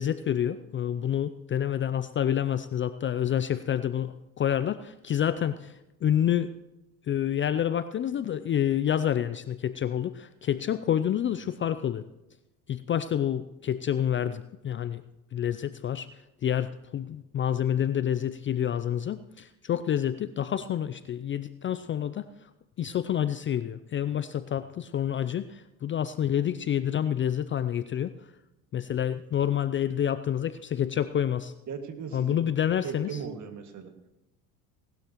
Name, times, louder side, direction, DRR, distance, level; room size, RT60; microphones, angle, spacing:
voice 1, 0.0-6.5 7.1-12.0 12.7-15.0 15.3-16.1 16.4-22.3 22.8-28.1 28.7-31.5 32.1-33.1, left 10 dB, 30° left, 13 dB, 0.4 m, -28 dB
voice 2, 31.7-32.4 32.8-33.9, right 6 dB, 40° right, 6 dB, 2.1 m, -37 dB
18.5 x 12.0 x 3.0 m, 0.94 s
hypercardioid pair, 80°, 43 cm